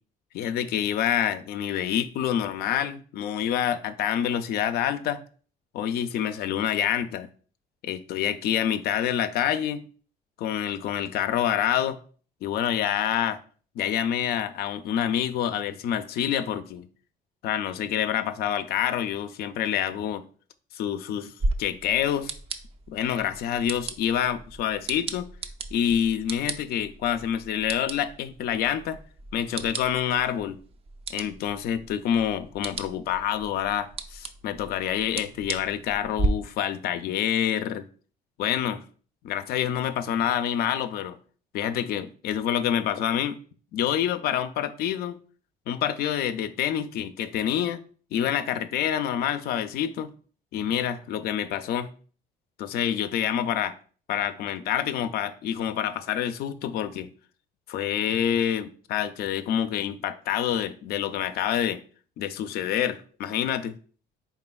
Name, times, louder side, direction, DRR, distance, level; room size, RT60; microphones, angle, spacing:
voice 1, 0.3-5.2 5.7-7.3 7.8-9.8 10.4-12.0 12.4-13.4 13.8-16.9 17.4-20.2 20.7-21.3 21.6-22.3 22.9-25.3 25.7-29.0 29.3-30.6 31.1-37.9 38.4-38.8 39.2-41.2 41.5-43.4 43.7-45.2 45.7-47.8 48.1-50.1 50.5-51.9 52.6-53.8 54.1-57.1 57.7-61.8 62.2-63.8, left 10 dB, 70° left, 0.4 m, -27 dB
sound 1, 21.4-36.3, right 2 dB, 35° right, 0.4 m, -36 dB
4.1 x 3.7 x 2.2 m
cardioid pair, 110°, 17 cm